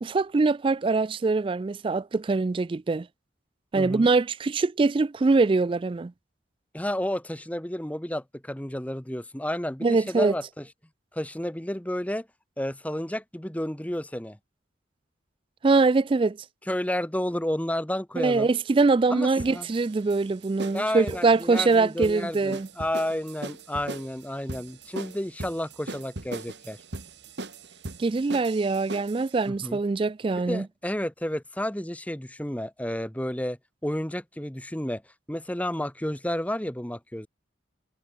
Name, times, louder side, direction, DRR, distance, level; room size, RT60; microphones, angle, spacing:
voice 1, 0.0-3.1 3.7-6.1 9.8-10.3 15.6-16.4 18.2-22.7 28.0-30.6, right 3 dB, 25° right, 0.3 m, -23 dB
voice 2, 3.8-4.1 6.7-10.7 11.1-12.3 12.6-14.4 16.7-18.5 19.1-19.7 20.7-26.8 29.5-29.8 30.3-35.0 35.3-37.3, left 1 dB, 10° left, 1.2 m, -31 dB
sound 1, 19.4-29.3, right 2 dB, 60° right, 2.0 m, -39 dB
head